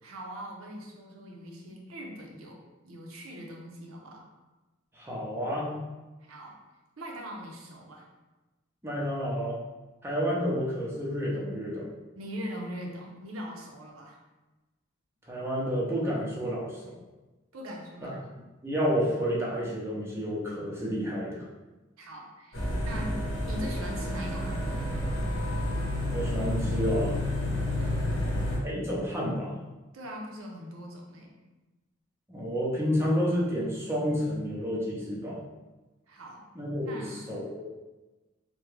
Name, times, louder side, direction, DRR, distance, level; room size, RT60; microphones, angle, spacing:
voice 1, 0.0-2.6 2.8-4.2 6.2-6.6 7.0-8.1 12.1-14.2 17.5-18.2 22.0-24.7 27.8-28.0 29.9-31.3 36.1-36.5 36.8-37.2, equal, 90° right, -1 dB, 0.6 m, -41 dB
voice 2, 4.9-5.8 8.8-9.6 10.0-11.9 15.3-16.9 18.0-18.1 18.6-21.5 26.1-27.2 28.4-29.6 32.3-35.4 36.6-37.6, equal, 10° right, -5 dB, 0.6 m, -30 dB
sound 1, 22.5-28.6, left 1 dB, 80° left, 0.9 m, -30 dB
3.5 x 2.2 x 3.1 m, 1.1 s
head